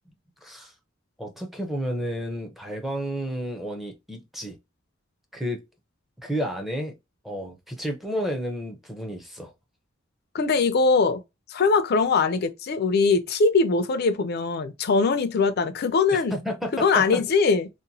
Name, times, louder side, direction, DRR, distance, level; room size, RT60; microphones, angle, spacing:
voice 1, 0.4-0.7 1.2-4.6 5.3-5.6 6.2-7.0 7.2-9.5 16.1-17.2, equal, ahead, 0.6 m, -31 dB
voice 2, 10.3-11.2 11.5-16.3 16.7-17.7, left 4 dB, 55° left, 0.4 m, -21 dB
2.9 x 2.1 x 2.6 m
head